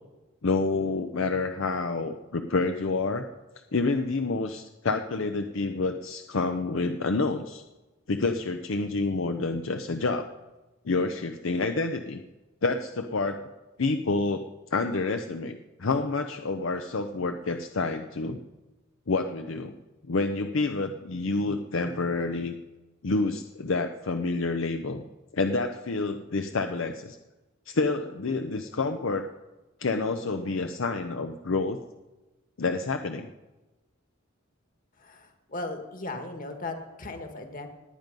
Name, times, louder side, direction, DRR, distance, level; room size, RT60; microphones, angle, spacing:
voice 1, 0.4-3.3 3.7-7.6 8.1-10.3 10.8-12.2 12.6-13.5 13.8-14.5 14.7-18.4 19.1-19.8 20.1-22.5 23.0-25.0 25.3-27.2 27.7-29.3 29.8-31.8 32.6-33.3, left 3 dB, 70° left, 6 dB, 0.7 m, -28 dB
voice 2, 35.0-37.7, left 2 dB, 45° left, 5 dB, 1.8 m, -37 dB
18.5 x 9.2 x 5.3 m, 1.1 s
head